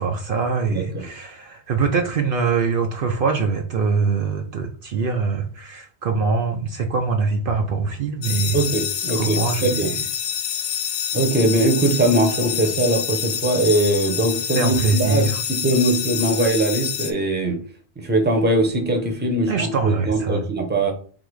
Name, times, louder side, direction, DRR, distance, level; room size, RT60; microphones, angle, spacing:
voice 1, 0.0-8.6 9.2-10.0 14.6-15.4 19.5-20.4, right 4 dB, 60° right, 3 dB, 0.8 m, -23 dB
voice 2, 0.7-1.0 8.5-9.9 11.1-15.3 15.6-17.6 18.0-20.9, right 1 dB, 10° right, 3 dB, 0.9 m, -21 dB
sound 1, 8.2-17.1, left 8 dB, 80° left, 0.9 m, -27 dB
3.9 x 2.9 x 4.7 m, 0.43 s
omnidirectional pair, 1.1 m